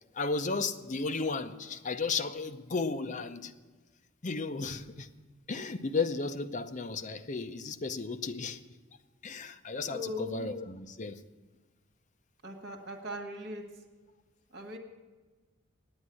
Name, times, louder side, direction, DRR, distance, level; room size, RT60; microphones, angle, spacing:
voice 1, 0.1-3.5 4.2-5.1 5.5-8.6 9.2-11.2, left 4 dB, 40° left, 8 dB, 0.6 m, -34 dB
voice 2, 9.8-10.6 12.4-13.6 14.5-14.8, left 1 dB, 55° right, 3 dB, 1.8 m, -39 dB
9.8 x 8.8 x 9.6 m, 1.3 s
head